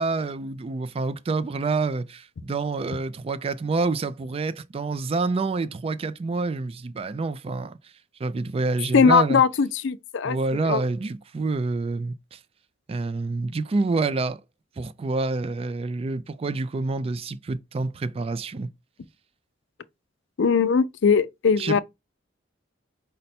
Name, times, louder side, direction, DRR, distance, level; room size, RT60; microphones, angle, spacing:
voice 1, 0.0-7.8 8.2-9.4 10.2-12.4 12.9-14.4 14.8-18.7 21.6-21.8, right 3 dB, 30° right, 0.3 m, -27 dB
voice 2, 8.9-10.8 20.4-21.8, left 6 dB, 65° left, 0.5 m, -20 dB
5.2 x 2.1 x 4.2 m
head